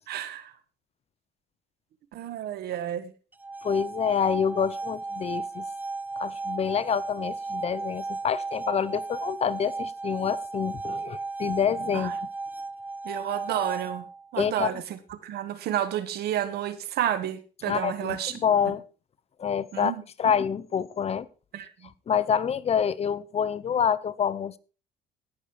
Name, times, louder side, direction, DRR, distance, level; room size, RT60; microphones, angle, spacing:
voice 1, 0.1-0.5 2.1-3.1 11.9-12.2 13.0-14.0 14.3-18.4 19.7-20.0 21.5-21.7, right 11 dB, 70° right, 1.6 m, -31 dB
sound 1, 3.3-14.3, right 3 dB, 10° right, 0.6 m, -35 dB
voice 2, 3.6-5.6 6.2-12.1 14.4-14.7 17.6-18.8 19.4-19.9 20.2-21.3 22.1-24.6, left 7 dB, 40° left, 0.8 m, -27 dB
17.5 x 6.7 x 4.7 m
cardioid pair, 110°, 17 cm